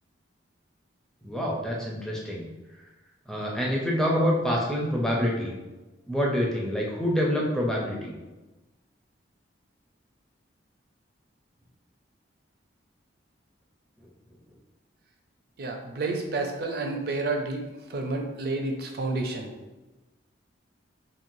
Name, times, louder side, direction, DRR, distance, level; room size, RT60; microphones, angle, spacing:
voice 1, 1.2-2.5 3.3-5.5 6.1-8.1, equal, 5° left, -4 dB, 0.5 m, -26 dB
voice 2, 15.6-19.5, right 3 dB, 55° right, 2 dB, 0.4 m, -30 dB
3.0 x 2.5 x 2.6 m, 1.1 s
head